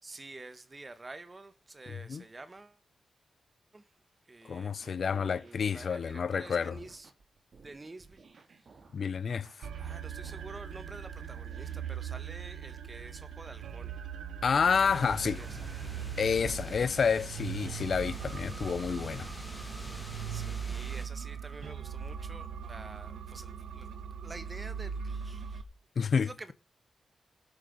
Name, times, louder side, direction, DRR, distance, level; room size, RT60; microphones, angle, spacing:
voice 1, 0.0-2.8 3.7-3.9 4.2-7.1 7.6-8.8 9.8-14.0 14.8-15.8 20.3-23.9 24.2-25.6 26.1-26.5, right 2 dB, 25° right, 1.4 m, -49 dB
voice 2, 4.4-6.8 8.9-9.5 14.4-15.4 16.2-19.3 26.0-26.5, left 6 dB, 60° left, 0.5 m, -29 dB
sound 1, 4.7-12.1, right 4 dB, 55° right, 2.0 m, -58 dB
sound 2, 9.6-25.6, right 8 dB, 90° right, 1.0 m, -40 dB
sound 3, 14.9-21.1, left 1 dB, 10° left, 2.4 m, -45 dB
18.5 x 6.5 x 5.3 m
cardioid pair, 90°, 0 cm